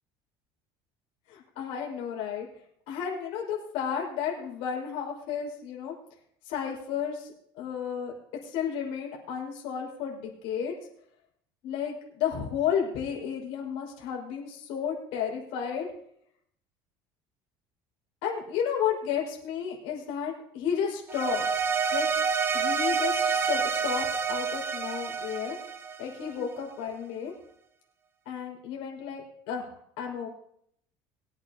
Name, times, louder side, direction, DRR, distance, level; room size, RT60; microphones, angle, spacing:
voice 1, 1.3-2.5 2.9-5.9 6.4-8.2 8.4-10.7 11.6-15.9 18.2-21.5 21.9-22.1 22.5-25.6 26.0-27.3 28.2-30.3, left 8 dB, 75° left, -2 dB, 5.1 m, -32 dB
sound 1, 21.1-26.4, right 6 dB, 25° right, 0.9 m, -28 dB
23.0 x 8.7 x 2.9 m, 0.69 s
cardioid pair, 155°, 10 cm